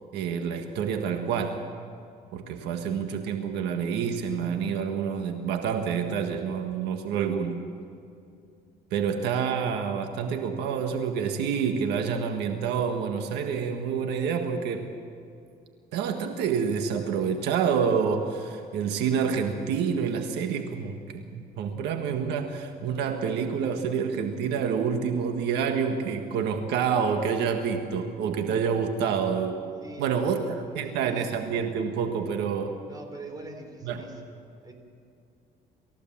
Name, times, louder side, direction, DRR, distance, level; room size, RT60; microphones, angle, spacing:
voice 1, 0.1-1.6 2.3-7.6 8.9-14.9 15.9-29.6 30.0-32.8 33.8-34.1, right 6 dB, 85° right, 5 dB, 1.6 m, -28 dB
voice 2, 29.8-31.2 32.8-34.7, right 2 dB, 25° right, 4 dB, 4.0 m, -44 dB
28.0 x 15.0 x 7.4 m, 2.5 s
cardioid pair, 110°, 17 cm